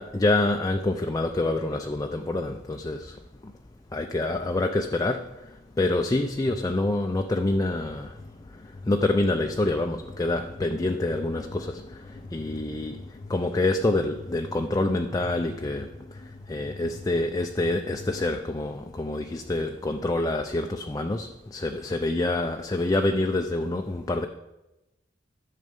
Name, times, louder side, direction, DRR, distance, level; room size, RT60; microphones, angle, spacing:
voice 1, 0.0-3.2 3.9-5.3 5.8-8.2 8.9-16.2 16.5-24.3, left 2 dB, 20° left, 4 dB, 0.4 m, -27 dB
sound 1, 6.4-18.3, left 2 dB, 50° left, 0.9 m, -45 dB
11.0 x 6.6 x 5.2 m, 0.98 s
head